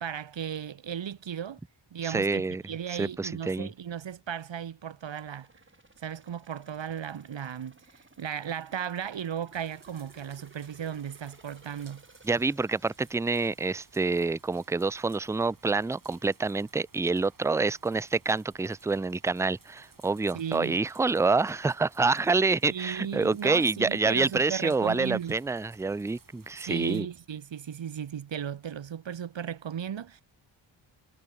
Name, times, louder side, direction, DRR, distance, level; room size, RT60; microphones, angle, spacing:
voice 1, 0.0-1.6 1.9-5.5 6.0-12.0 20.3-20.8 22.6-25.4 26.6-30.2, right 8 dB, 65° right, 1.4 m, -36 dB
voice 2, 2.0-2.6 3.0-3.7 12.2-27.1, right 3 dB, 5° right, 0.3 m, -27 dB
sound 1, 5.1-15.8 16.2-16.3, right 2 dB, 25° right, 5.8 m, -59 dB
sound 2, 9.5-27.0, right 4 dB, 45° right, 4.2 m, -59 dB
cardioid pair, 70°, 48 cm